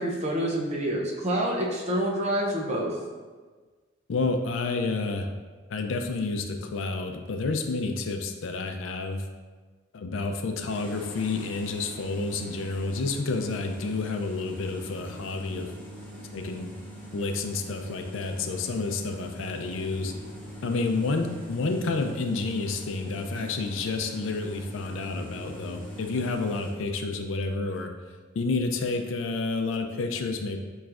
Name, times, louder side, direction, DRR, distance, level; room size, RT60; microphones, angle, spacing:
voice 1, 0.0-3.0, right 1 dB, 35° right, -1 dB, 0.6 m, -27 dB
voice 2, 4.1-5.3 5.7-9.2 9.9-15.7 16.3-16.7 17.1-20.1 20.6-27.9 28.4-30.6, left 3 dB, 80° left, 5 dB, 0.4 m, -30 dB
sound 1, 10.7-26.7, equal, 10° left, 0.6 m, -42 dB
5.8 x 3.1 x 2.4 m, 1.4 s
head